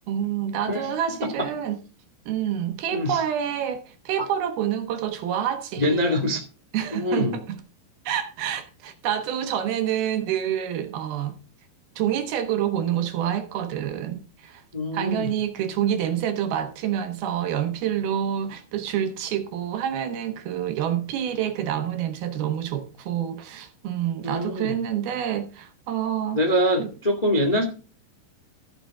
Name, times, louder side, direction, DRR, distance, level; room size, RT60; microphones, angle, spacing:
voice 1, 0.1-1.8 2.3-6.1 6.7-7.6 8.1-11.4 12.0-14.6 14.9-26.4 26.8-26.9, right 10 dB, 70° right, 3.0 m, -27 dB
voice 2, 5.8-6.4 6.9-7.4 14.7-15.3 24.2-24.8 26.3-27.6, equal, 75° left, 0.3 m, -24 dB
15.0 x 6.8 x 3.6 m
omnidirectional pair, 4.8 m